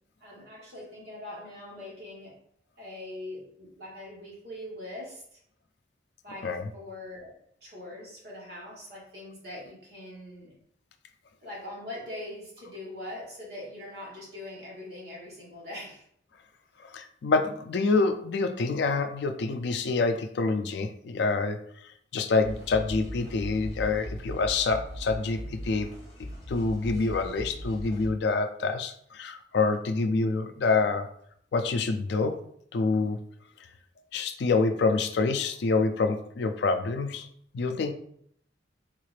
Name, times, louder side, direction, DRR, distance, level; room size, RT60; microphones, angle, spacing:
voice 1, 0.2-2.3 2.8-5.4 6.2-7.3 7.6-10.5 11.4-16.0, left 1 dB, 55° right, -5 dB, 1.4 m, -42 dB
voice 2, 16.8-21.6 22.1-25.9 26.5-31.1 31.5-32.4 32.7-33.2 34.1-37.3 37.5-37.9, left 3 dB, 65° left, 7 dB, 0.3 m, -27 dB
sound 1, 22.4-28.1, equal, 30° left, 1.2 m, -39 dB
3.6 x 2.4 x 3.2 m, 0.66 s
head